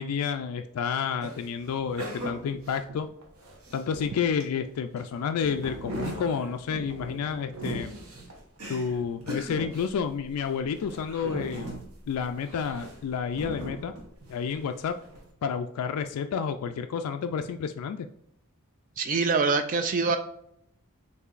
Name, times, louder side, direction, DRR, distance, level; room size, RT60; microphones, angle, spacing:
voice 1, 0.0-3.1 3.7-7.9 8.7-11.8 12.1-13.9 14.3-15.0 15.4-18.1, left 6 dB, 75° left, 8 dB, 0.3 m, -30 dB
sound 1, 1.2-4.5 5.0-14.6 14.9-15.2, right 1 dB, 70° right, 1.1 m, -39 dB
voice 2, 19.0-20.2, right 4 dB, 35° right, 7 dB, 0.3 m, -24 dB
6.6 x 2.7 x 2.5 m, 0.71 s
head